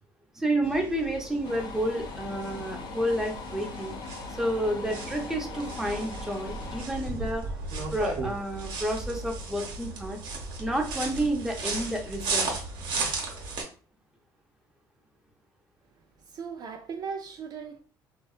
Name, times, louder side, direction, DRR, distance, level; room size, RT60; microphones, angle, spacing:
voice 1, 0.3-3.9 4.3-7.4 7.9-10.2 10.6-12.5, right 1 dB, 5° right, 0.7 m, -30 dB
sound 1, 0.6-13.6, right 3 dB, 70° right, 0.8 m, -35 dB
sound 2, 1.4-6.9, left 5 dB, 60° left, 0.4 m, -41 dB
voice 2, 16.3-17.8, right 6 dB, 50° right, 0.4 m, -37 dB
2.6 x 2.2 x 2.3 m
supercardioid pair, 85°, 9 cm